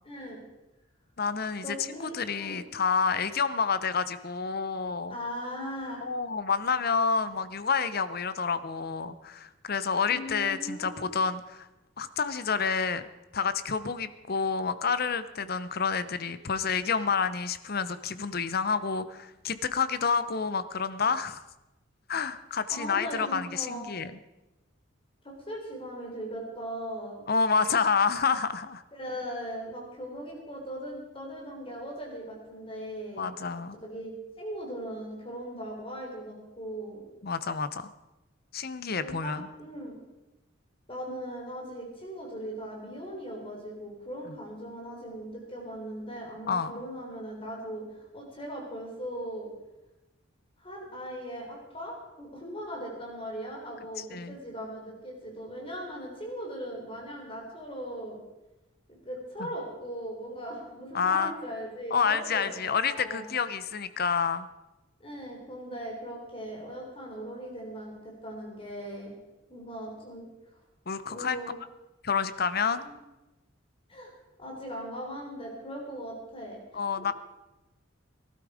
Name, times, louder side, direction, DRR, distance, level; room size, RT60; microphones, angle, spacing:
voice 1, 0.0-0.4 1.6-2.6 5.1-6.1 10.1-11.0 22.7-24.0 25.2-27.2 28.9-33.3 33.7-37.0 38.9-40.0 40.9-49.5 50.6-58.2 58.9-63.3 65.0-69.1 69.5-70.3 71.1-71.6 72.8-72.9 73.9-74.1 74.4-77.1, equal, 30° left, -1 dB, 3.8 m, -39 dB
voice 2, 1.2-5.2 6.0-11.7 12.0-13.0 13.3-21.4 22.1-24.1 27.3-28.8 33.2-33.8 37.2-37.9 38.5-39.5 44.3-44.4 46.5-46.7 54.1-54.4 60.9-61.3 61.9-64.5 70.9-71.4 72.0-72.9 76.7-77.1, left 5 dB, 50° left, 14 dB, 0.8 m, -29 dB
19.0 x 12.5 x 5.0 m, 1.0 s
head